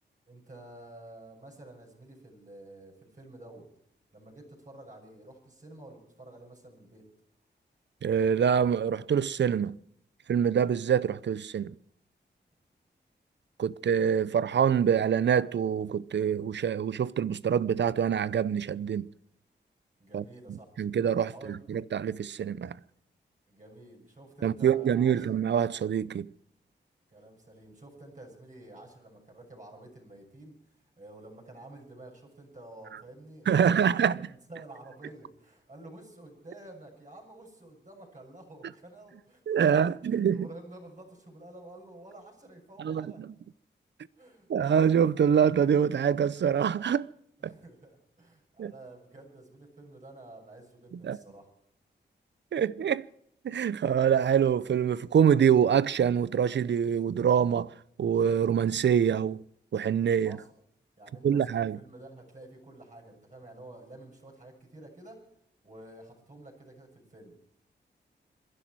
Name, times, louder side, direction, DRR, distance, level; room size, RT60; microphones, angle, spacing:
voice 1, 0.3-3.7 4.1-7.0 20.0-20.7 21.3-21.6 23.5-25.3 27.1-39.6 40.0-43.2 44.2-44.5 47.4-51.5 60.2-60.5 61.0-61.5 61.7-65.2 65.6-67.3, right 2 dB, 40° right, 6.9 m, -50 dB
voice 2, 8.0-9.8 10.3-11.7 13.6-19.1 20.1-20.2 20.5-22.8 24.4-26.3 33.5-34.2 39.5-40.5 42.8-43.1 44.5-47.1 47.4-47.5 48.6-48.7 51.0-51.2 52.5-53.1 53.4-57.7 58.0-59.4 59.7-60.4 61.2-61.8, right 8 dB, 70° right, 0.6 m, -25 dB
26.5 x 11.0 x 4.6 m
cardioid pair, 55°, 19 cm